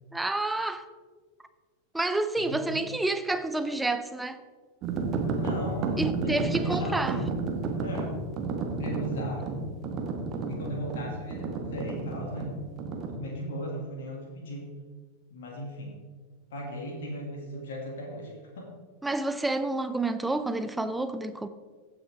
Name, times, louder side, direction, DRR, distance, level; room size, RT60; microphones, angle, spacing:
voice 1, 0.1-0.9 1.9-4.4 6.0-7.2 19.0-21.5, right 2 dB, 5° right, 0.6 m, -29 dB
voice 2, 2.4-2.8 5.3-7.3 7.8-8.1 8.8-9.5 10.5-12.6 13.2-14.7 15.3-16.0 16.5-18.7, equal, 60° left, 2.2 m, -37 dB
sound 1, 4.8-13.2, right 3 dB, 35° right, 1.3 m, -32 dB
15.5 x 6.3 x 3.5 m
figure-of-eight pair, 90°, 0 cm